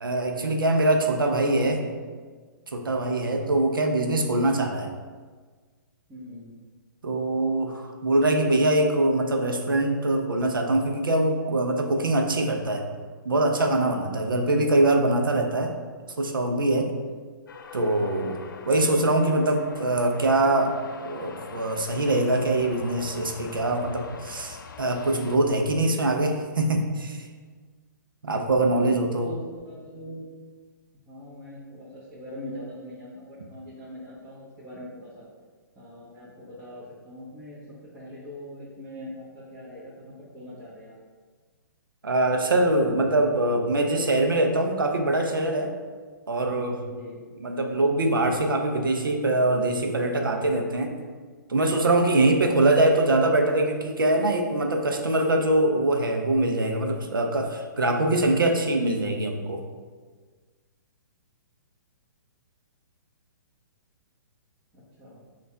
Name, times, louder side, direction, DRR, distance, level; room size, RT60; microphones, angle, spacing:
voice 1, 0.0-1.8 2.7-4.9 7.0-12.8 13.2-15.7 16.2-16.9 17.7-18.4 18.6-27.3 28.2-29.3 42.0-45.7 46.3-46.8 47.4-50.9 51.5-59.6, right 2 dB, 85° right, 3 dB, 0.6 m, -23 dB
voice 2, 3.2-3.5 6.1-6.5 14.3-14.4 16.9-17.1 28.7-30.2 31.0-35.2 35.7-41.0 46.9-47.2 64.7-65.2, left 1 dB, 15° right, -12 dB, 1.1 m, -42 dB
sound 1, 17.5-25.4, left 5 dB, 75° left, 0.4 m, -43 dB
5.3 x 2.5 x 3.3 m, 1.5 s
hypercardioid pair, 130°, 11 cm